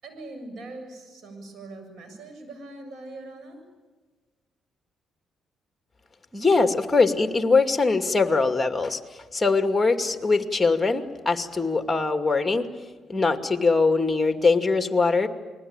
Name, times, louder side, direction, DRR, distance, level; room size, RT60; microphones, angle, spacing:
voice 1, 0.0-3.6, right 2 dB, 65° right, 7 dB, 7.4 m, -41 dB
voice 2, 6.3-9.0 9.3-12.7 13.1-15.3, left 4 dB, 15° left, 7 dB, 2.3 m, -22 dB
29.5 x 21.5 x 9.0 m, 1.3 s
cardioid pair, 90°, 0 cm